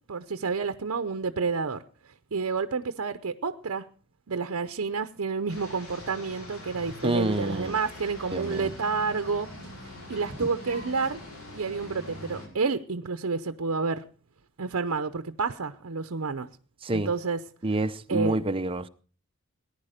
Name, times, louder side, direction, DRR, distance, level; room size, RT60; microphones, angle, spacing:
voice 1, 0.1-1.8 2.3-3.9 4.3-9.5 9.8-11.2 11.5-14.0 14.6-16.5 16.9-17.4 18.1-18.4, right 4 dB, 70° right, 0.7 m, -29 dB
sound 1, 5.5-12.5, left 1 dB, 80° left, 5.3 m, -43 dB
voice 2, 7.0-7.8 8.3-8.7 10.4-10.5 16.8-17.1 17.6-18.9, right 2 dB, 25° right, 0.6 m, -28 dB
18.5 x 10.5 x 5.0 m
head